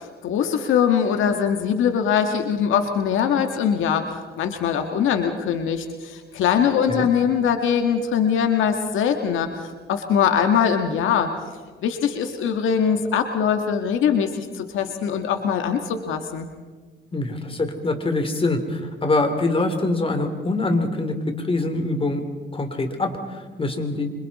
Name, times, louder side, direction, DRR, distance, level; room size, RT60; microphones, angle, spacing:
voice 1, 0.0-11.3 11.8-16.5, left 7 dB, 85° left, 5 dB, 1.8 m, -22 dB
voice 2, 17.1-22.2 22.5-24.1, left 2 dB, 25° left, 6 dB, 3.3 m, -24 dB
27.0 x 25.5 x 4.3 m, 1.4 s
cardioid pair, 90°, 20 cm